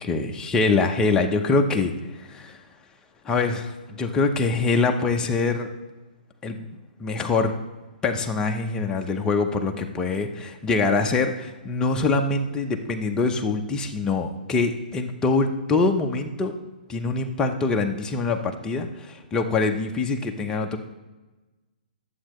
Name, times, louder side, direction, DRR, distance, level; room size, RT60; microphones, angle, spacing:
voice 1, 0.0-2.6 3.2-5.7 6.4-6.6 7.0-7.5 8.0-16.5 16.9-20.8, left 3 dB, 15° left, 3 dB, 0.7 m, -24 dB
11.5 x 7.5 x 3.1 m, 1.2 s
hypercardioid pair, 135°, 5 cm